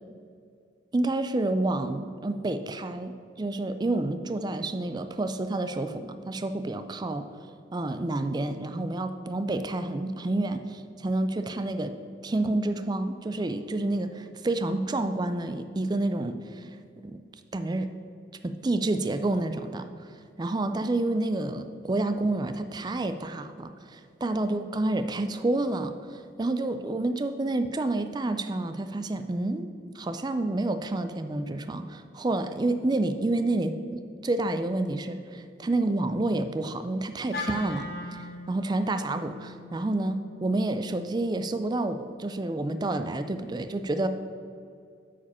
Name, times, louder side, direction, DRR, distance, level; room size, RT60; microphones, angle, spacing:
voice 1, 0.9-7.3 7.7-11.9 12.2-16.7 17.0-17.2 17.5-17.9 18.4-20.1 20.4-29.7 29.9-44.1, right 2 dB, 20° right, 10 dB, 0.3 m, -29 dB
Wind instrument woodwind instrument, 37.3-41.6, left 2 dB, 55° left, 1.4 m, -40 dB
8.5 x 5.0 x 5.5 m, 2.4 s
head